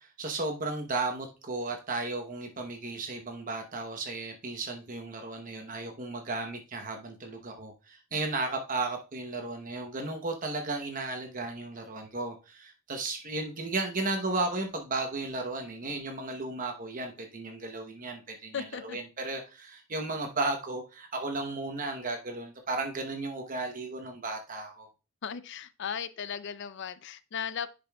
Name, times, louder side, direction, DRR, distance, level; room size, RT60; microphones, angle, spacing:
voice 1, 0.0-24.9, right 3 dB, 35° right, 0.9 m, -34 dB
voice 2, 18.5-19.0 25.2-27.7, left 7 dB, 55° left, 0.5 m, -36 dB
10.5 x 5.1 x 2.3 m
head